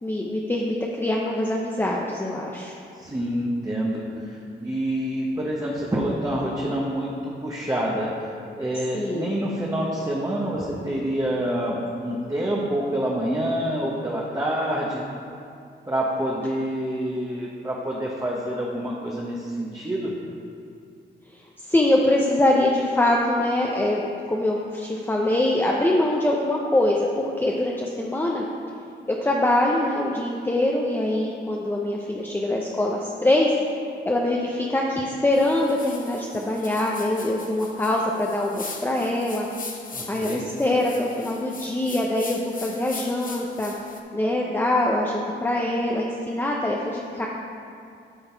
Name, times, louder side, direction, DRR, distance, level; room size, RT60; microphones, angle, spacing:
voice 1, 0.0-2.7 8.9-9.3 21.7-24.0 24.3-28.4 29.1-33.5 34.0-39.5 40.1-43.7 44.1-47.3, left 1 dB, 10° left, -2 dB, 0.7 m, -23 dB
voice 2, 3.0-8.1 8.5-15.0 15.9-20.1 39.9-40.4, right 1 dB, 20° right, -4 dB, 1.0 m, -27 dB
sound 1, 35.3-44.0, left 4 dB, 45° left, 1.0 m, -40 dB
11.5 x 3.9 x 4.6 m, 2.4 s
cardioid pair, 75°, 20 cm